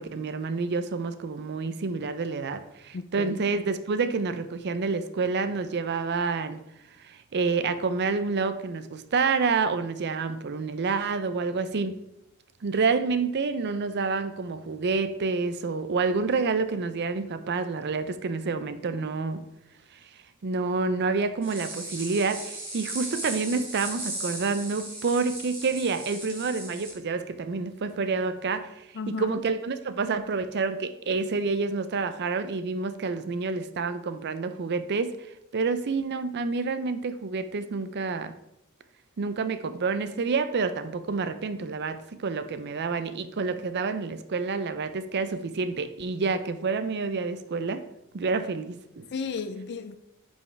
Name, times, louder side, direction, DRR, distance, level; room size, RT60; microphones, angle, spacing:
voice 1, 0.0-6.6 7.0-11.9 12.6-19.4 20.4-35.1 35.5-38.3 39.2-47.8 48.1-49.1, right 4 dB, 50° right, 0.5 m, -28 dB
voice 2, 2.9-3.4 29.0-29.3 49.1-50.0, left 5 dB, 55° left, 0.4 m, -34 dB
sound 1, 21.4-26.9, right 2 dB, 25° right, 2.8 m, -37 dB
9.3 x 5.4 x 3.3 m
head